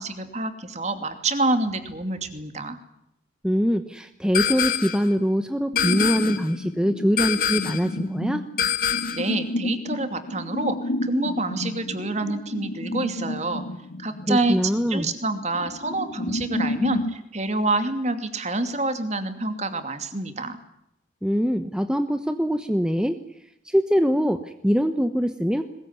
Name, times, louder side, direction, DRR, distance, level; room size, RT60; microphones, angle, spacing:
voice 1, 0.0-2.8 9.1-13.6 14.0-14.6 14.9-20.6, right 2 dB, 35° right, 8 dB, 2.7 m, -27 dB
voice 2, 3.4-8.4 14.3-15.1 21.2-23.2 23.6-25.6, equal, 5° right, 8 dB, 1.1 m, -23 dB
sound 1, 4.3-5.1 5.8-6.5 7.2-7.9 8.6-9.3, left 9 dB, 45° left, 1.8 m, -25 dB
sound 2, 5.7-17.2, left 1 dB, 70° left, 1.7 m, -31 dB
22.0 x 21.0 x 9.7 m, 0.82 s
head